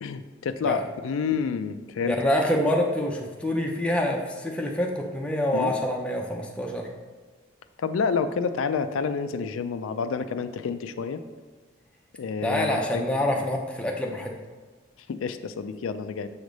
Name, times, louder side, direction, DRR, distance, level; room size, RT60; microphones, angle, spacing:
voice 1, 0.0-2.2 5.5-5.7 7.8-11.2 12.2-13.2 15.1-16.3, left 5 dB, 85° left, 10 dB, 0.4 m, -29 dB
voice 2, 2.0-6.9 12.4-14.3, left 1 dB, 5° left, 0 dB, 0.6 m, -26 dB
7.1 x 3.3 x 5.2 m, 1.4 s
head